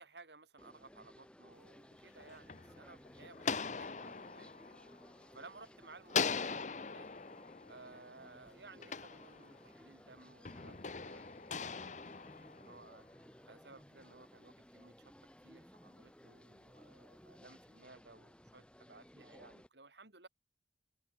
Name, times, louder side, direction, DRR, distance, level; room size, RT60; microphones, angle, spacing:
voice 1, 0.0-4.8 5.3-7.1 7.7-13.0 13.4-15.1 15.4-20.3, right 3 dB, 75° right, 3.6 m, -58 dB
sound 1, 0.6-19.7, equal, 5° left, 3.4 m, -60 dB
sound 2, 1.9-5.6 6.1-9.8 10.4-13.1, left 5 dB, 45° left, 1.0 m, -41 dB
open air
head